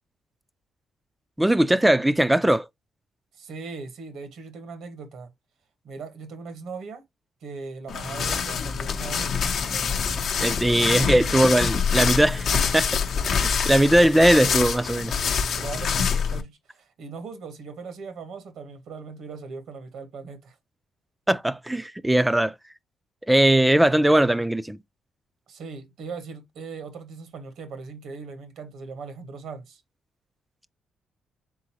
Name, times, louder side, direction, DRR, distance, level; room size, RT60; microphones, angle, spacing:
voice 1, 1.4-2.7 10.4-13.0 13.2-15.1 21.3-22.5 23.3-24.8, right 1 dB, 5° right, 0.4 m, -20 dB
voice 2, 3.3-5.3 5.8-7.0 7.4-9.4 15.6-20.6 25.5-29.8, right 4 dB, 75° right, 1.1 m, -39 dB
sound 1, 7.9-16.4, left 6 dB, 60° left, 0.7 m, -25 dB
3.8 x 3.8 x 2.9 m
cardioid pair, 90°, 0 cm